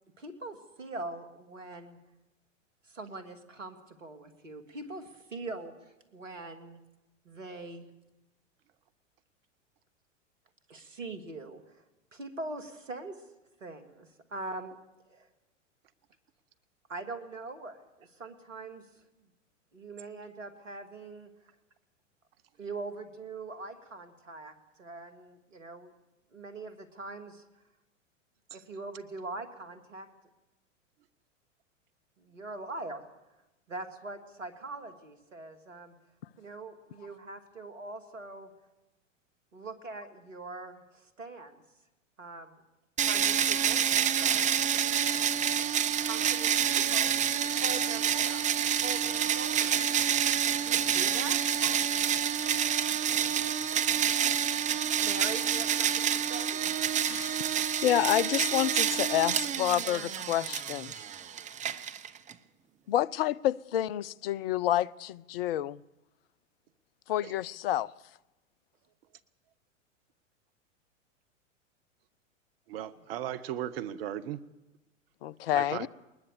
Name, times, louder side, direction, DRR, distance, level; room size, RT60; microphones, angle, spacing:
voice 1, 0.2-2.0 2.8-6.8 7.2-7.9 10.7-11.8 12.1-13.3 13.6-14.8 15.1-15.3 16.9-19.0 19.7-21.3 22.6-25.9 26.3-27.4 28.5-30.1 32.2-33.1 33.7-36.0 36.4-38.5 39.5-41.6 42.2-42.6 43.0-44.7 46.0-47.3 47.6-48.4 48.8-50.1 50.6-51.4 55.0-56.6, right 2 dB, 75° right, 2.7 m, -42 dB
sound 1, 43.0-62.3, right 9 dB, 20° right, 0.9 m, -28 dB
voice 2, 57.0-57.6 57.8-60.9 62.9-65.8 67.1-67.9 75.2-75.9, left 12 dB, 50° left, 0.6 m, -29 dB
voice 3, 72.7-74.4 75.5-75.9, right 11 dB, 50° right, 1.0 m, -36 dB
21.0 x 20.0 x 6.9 m
figure-of-eight pair, 95°, 38 cm